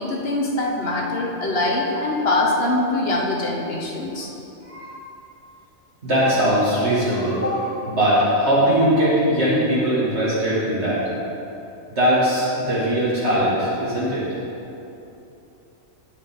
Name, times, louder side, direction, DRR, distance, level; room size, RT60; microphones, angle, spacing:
voice 1, 0.0-4.3, left 2 dB, 50° left, -1 dB, 1.4 m, -23 dB
voice 2, 6.0-11.1 11.9-14.2, equal, 60° right, -10 dB, 2.4 m, -20 dB
17.0 x 5.7 x 3.7 m, 2.9 s
omnidirectional pair, 1.3 m